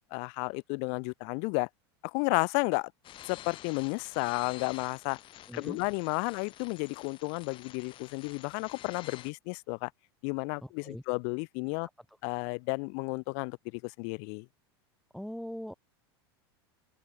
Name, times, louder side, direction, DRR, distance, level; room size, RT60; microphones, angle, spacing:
voice 1, 0.1-1.7 2.0-2.9 3.3-5.2 5.5-9.9 10.2-11.9 12.2-14.5, left 40 dB or more, 55° left, 1.8 m, -32 dB
sound 1, 3.0-9.3, left 13 dB, 40° left, 7.2 m, -49 dB
voice 2, 5.5-5.8 10.6-11.0 15.1-15.7, equal, ahead, 1.6 m, -41 dB
open air
supercardioid pair, 125°, 14 cm